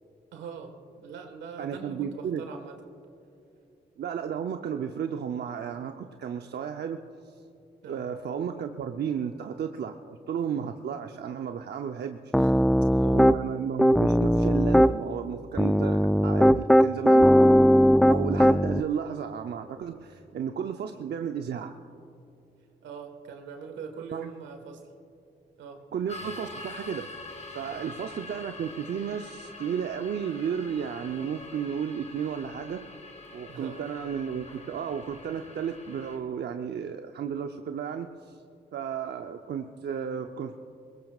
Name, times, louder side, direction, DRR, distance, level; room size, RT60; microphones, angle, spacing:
voice 1, 0.3-2.8 7.8-8.1 12.3-13.2 22.8-24.8 25.6-25.8 27.7-28.0 33.5-33.8, right 6 dB, 85° right, 5 dB, 1.6 m, -42 dB
voice 2, 1.6-2.4 4.0-7.0 7.2-7.3 7.9-12.3 13.1-17.3 18.0-21.7 24.1-24.3 25.9-32.8 33.3-38.4 38.7-40.5, right 7 dB, 65° right, 6 dB, 0.7 m, -33 dB
Piano, 12.3-13.4 13.8-14.9 15.6-18.8, equal, ahead, 0.4 m, -19 dB
sound 1, 26.1-36.2, left 2 dB, 40° left, 2.7 m, -44 dB
22.0 x 20.0 x 2.4 m, 2.7 s
supercardioid pair, 50°, 18 cm